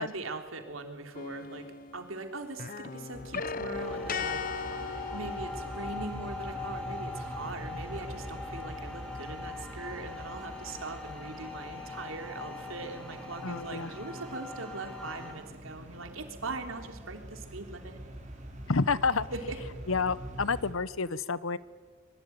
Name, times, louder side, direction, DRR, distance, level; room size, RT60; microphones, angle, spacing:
voice 1, 0.0-18.0 19.3-19.6, right 3 dB, 80° right, 5 dB, 3.4 m, -41 dB
sound 1, 1.1-2.2 2.5-6.1, left 5 dB, 45° left, 0.8 m, -37 dB
sound 2, 3.1-20.7, right 1 dB, 35° right, 4.2 m, -45 dB
sound 3, 3.7-15.3, left 3 dB, 5° left, 5.1 m, -42 dB
voice 2, 13.4-13.9 18.7-19.3 19.9-21.6, left 4 dB, 80° left, 18 dB, 0.9 m, -29 dB
25.0 x 23.0 x 9.5 m, 1.5 s
head